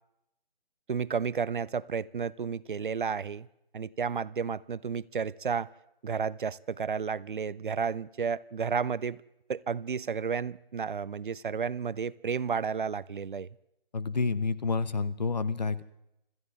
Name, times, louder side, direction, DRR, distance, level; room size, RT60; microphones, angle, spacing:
voice 1, 0.9-3.5 3.7-5.7 6.0-9.2 9.5-13.5, right 6 dB, 60° right, 20 dB, 0.6 m, -32 dB
voice 2, 13.9-15.8, left 4 dB, 45° left, 15 dB, 0.9 m, -29 dB
26.0 x 14.0 x 3.6 m, 0.84 s
hypercardioid pair, 175°, 29 cm